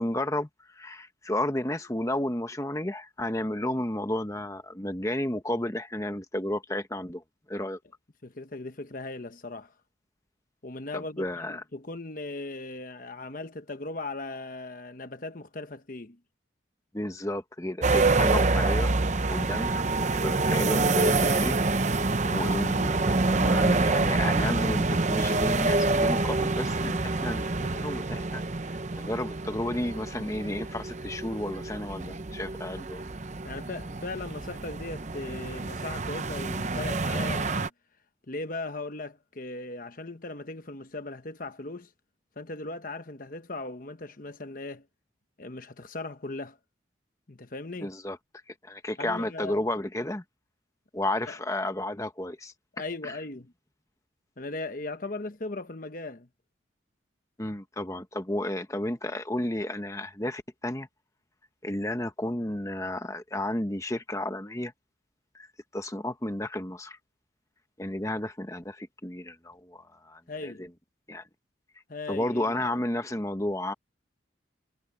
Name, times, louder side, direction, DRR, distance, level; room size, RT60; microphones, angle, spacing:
voice 1, 0.0-7.8 10.9-11.6 16.9-18.9 19.3-21.6 22.2-33.1 47.8-48.2 48.6-50.2 50.9-52.5 53.0-53.2 57.4-60.9 61.6-64.7 65.3-65.5 65.7-67.0 67.8-70.7 71.1-71.2 72.1-73.7, left 1 dB, 15° left, 1.1 m, -32 dB
voice 2, 8.2-9.7 10.6-16.2 18.2-18.4 33.4-37.7 38.3-41.9 42.4-44.9 45.4-46.6 47.3-47.9 49.0-49.6 51.3-51.4 52.7-53.5 54.4-56.3 70.3-70.6 71.9-72.6, left 2 dB, 45° left, 1.1 m, -38 dB
sound 1, 17.8-37.7, right 3 dB, 35° right, 0.8 m, -27 dB
head